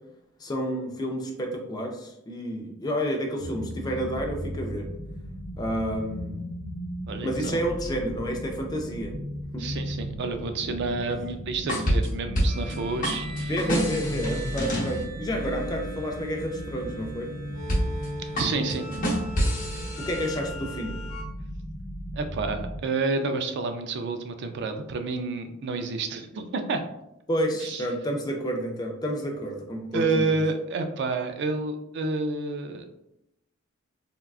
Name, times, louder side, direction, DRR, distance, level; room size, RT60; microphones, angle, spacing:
voice 1, 0.4-4.9 5.6-6.4 7.2-9.1 9.5-9.7 11.1-11.2 13.5-17.3 20.0-20.9 27.3-30.3, equal, 20° left, 2 dB, 0.4 m, -30 dB
sound 1, 3.4-22.8, equal, 35° right, 0.7 m, -36 dB
voice 2, 7.1-7.6 9.6-13.7 18.3-18.8 22.1-26.8 27.6-27.8 29.9-32.9, right 3 dB, 55° right, 7 dB, 0.3 m, -29 dB
sound 2, 11.5-12.7 13.0-15.0 17.7-18.1 18.4-20.4, equal, 40° left, 0.8 m, -27 dB
sound 3, 12.5-21.2, right 1 dB, 70° left, 0.6 m, -41 dB
3.5 x 2.2 x 2.3 m, 0.84 s
head